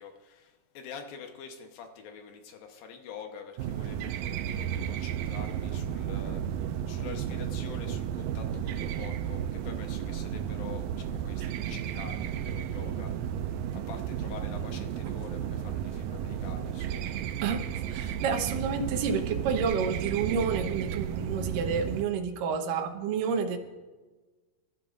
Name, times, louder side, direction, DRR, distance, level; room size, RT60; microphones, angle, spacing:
voice 1, 0.0-13.3 13.7-17.2 17.9-18.2, left 6 dB, 70° left, 5 dB, 2.6 m, -46 dB
sound 1, 3.6-22.0, right 9 dB, 85° right, 2.0 m, -33 dB
voice 2, 17.4-23.6, right 6 dB, 70° right, 4 dB, 2.5 m, -30 dB
26.5 x 12.5 x 2.6 m, 1.3 s
omnidirectional pair, 4.6 m